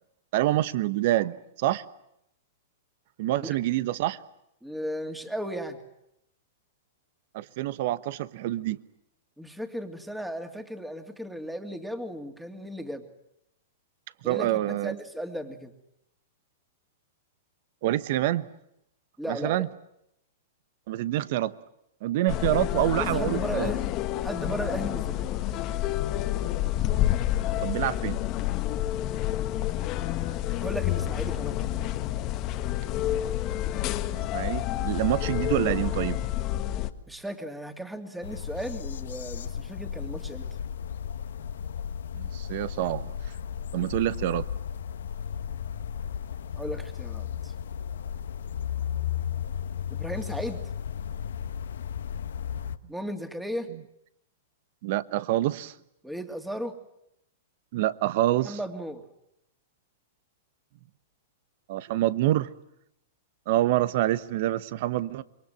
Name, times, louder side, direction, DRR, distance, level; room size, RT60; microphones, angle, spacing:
voice 1, 0.3-1.8 3.2-4.2 7.3-8.8 14.2-14.9 17.8-18.5 19.3-19.7 20.9-21.5 22.0-23.7 27.6-28.2 34.1-36.2 42.1-43.1 43.7-44.5 54.8-55.7 57.7-58.6 61.7-62.5 63.5-65.2, right 14 dB, 55° right, 1.1 m, -26 dB
voice 2, 4.6-5.8 9.4-13.1 14.2-15.7 19.2-19.7 22.9-23.8 24.2-25.3 30.6-31.7 37.1-40.5 46.6-47.5 49.9-50.6 52.9-53.7 56.0-56.8 58.4-59.0, equal, 5° right, 2.7 m, -35 dB
sound 1, 22.3-36.9, left 13 dB, 40° left, 1.5 m, -29 dB
sound 2, 38.2-52.8, left 8 dB, 80° left, 1.3 m, -34 dB
27.0 x 23.0 x 9.2 m
hypercardioid pair, 120°, 0 cm